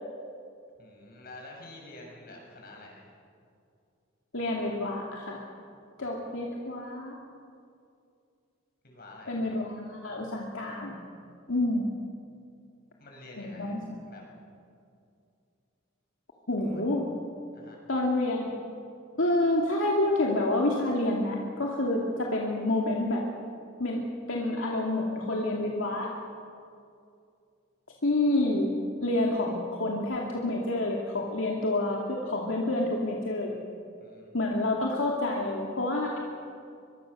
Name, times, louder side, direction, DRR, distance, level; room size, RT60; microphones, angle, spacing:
voice 1, 0.8-3.1 8.8-9.5 13.0-14.2 16.6-16.9 17.5-17.8 34.0-34.3, left 2 dB, 50° left, 0 dB, 6.8 m, -48 dB
voice 2, 4.3-5.5 6.0-7.2 9.3-11.0 11.5-12.0 13.4-13.8 16.5-17.0 17.9-18.5 19.2-23.2 23.8-26.1 28.0-28.7 29.0-33.6 34.3-36.2, left 2 dB, 75° left, -2 dB, 2.5 m, -28 dB
23.5 x 23.5 x 6.9 m, 2.4 s
head